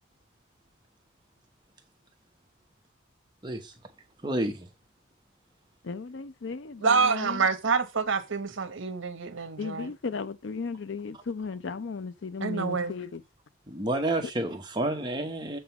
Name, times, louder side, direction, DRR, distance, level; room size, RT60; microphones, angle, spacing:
voice 1, 3.4-3.7 4.2-4.7 13.7-15.6, right 1 dB, 20° right, 1.0 m, -30 dB
voice 2, 5.8-7.5 9.6-13.2, left 4 dB, 65° left, 0.5 m, -35 dB
voice 3, 6.8-9.9 12.4-12.9, right 5 dB, 75° right, 0.9 m, -27 dB
7.4 x 3.7 x 5.8 m
head